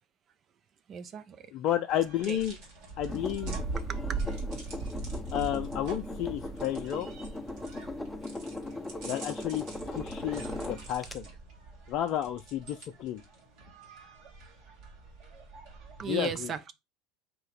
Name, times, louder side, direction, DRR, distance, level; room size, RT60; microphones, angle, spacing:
voice 1, 0.9-1.4 2.3-2.4 3.9-4.0 16.0-16.7, right 7 dB, 40° right, 0.5 m, -35 dB
voice 2, 1.5-2.6 3.0-3.6 5.3-7.1 9.0-11.3 11.9-13.2 16.1-16.5, left 11 dB, 55° left, 0.4 m, -32 dB
sound 1, 1.9-16.0, right 3 dB, 60° right, 1.8 m, -41 dB
sound 2, 3.1-11.2, left 2 dB, 10° left, 0.6 m, -39 dB
3.8 x 2.8 x 4.8 m
hypercardioid pair, 75°, 0 cm